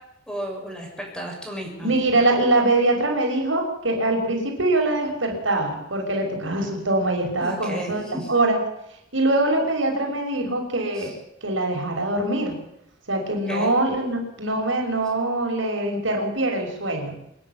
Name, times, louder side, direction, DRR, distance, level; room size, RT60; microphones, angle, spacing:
voice 1, 0.3-1.9 7.4-8.3 10.9-11.1 13.5-13.7, right 1 dB, 5° left, 0 dB, 6.7 m, -33 dB
voice 2, 1.8-8.6 9.1-11.1 11.4-12.6 13.1-17.1, right 2 dB, 80° right, 2 dB, 6.1 m, -23 dB
27.5 x 10.5 x 9.6 m, 0.80 s
head